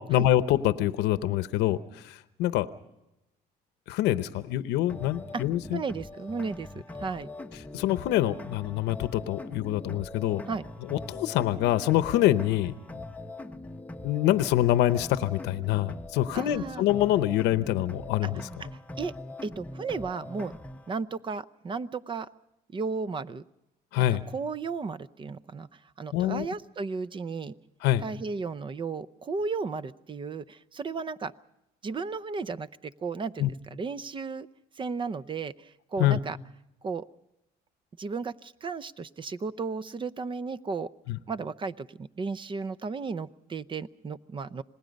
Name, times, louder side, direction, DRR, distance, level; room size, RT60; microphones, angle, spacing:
voice 1, 0.0-2.7 3.9-5.8 7.7-10.4 10.9-13.0 14.0-18.4 23.9-24.2 26.1-26.5 27.8-28.0 33.4-33.5 36.0-36.2 41.1-41.2, left 13 dB, 90° left, 12 dB, 0.8 m, -25 dB
sound 1, 4.9-20.9, left 2 dB, 10° left, 0.9 m, -42 dB
voice 2, 5.7-6.7 6.9-7.3 10.5-10.6 16.3-16.8 19.0-19.1 19.4-20.5 20.9-22.3 22.7-23.4 24.0-25.7 26.0-27.5 28.0-31.3 31.8-34.5 34.8-36.4 36.8-37.0 38.0-40.9 41.3-44.6, right 4 dB, 30° right, 16 dB, 0.7 m, -34 dB
27.0 x 19.5 x 5.3 m, 0.89 s
cardioid pair, 110°, 17 cm